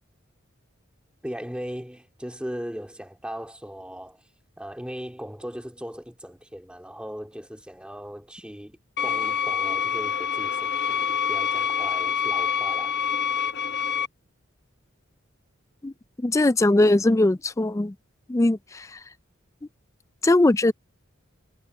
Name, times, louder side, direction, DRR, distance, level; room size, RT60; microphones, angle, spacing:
voice 1, 1.2-4.2 4.6-13.0, equal, 5° right, 2.9 m, -38 dB
sound 1, 9.0-14.1, left 7 dB, 55° left, 1.1 m, -26 dB
voice 2, 16.2-17.9 18.3-19.0 20.2-20.7, left 2 dB, 15° left, 0.4 m, -20 dB
head